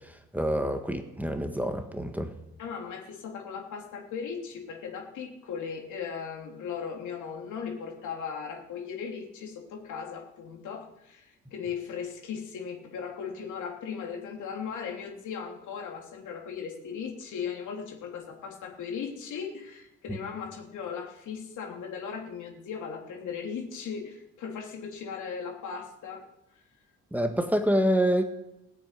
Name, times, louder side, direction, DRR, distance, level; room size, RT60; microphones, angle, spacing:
voice 1, 0.3-2.3 27.1-28.2, equal, 5° right, 6 dB, 1.6 m, -26 dB
voice 2, 2.6-26.2, left 6 dB, 80° left, 2 dB, 3.2 m, -37 dB
15.5 x 7.8 x 9.2 m, 0.93 s
cardioid pair, 90°, 30 cm